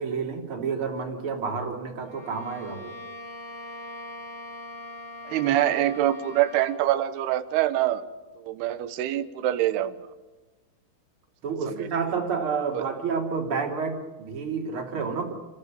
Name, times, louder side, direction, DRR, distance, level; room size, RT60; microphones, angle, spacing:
voice 1, 0.0-2.9 11.4-15.3, right 5 dB, 30° right, 1 dB, 3.3 m, -29 dB
Bowed string instrument, 2.0-6.9, left 2 dB, 25° left, 3.9 m, -41 dB
voice 2, 5.2-8.0 8.4-9.9 11.7-11.9 12.7-12.9, right 13 dB, 70° right, 11 dB, 2.7 m, -25 dB
29.5 x 15.0 x 8.7 m, 1.2 s
omnidirectional pair, 5.5 m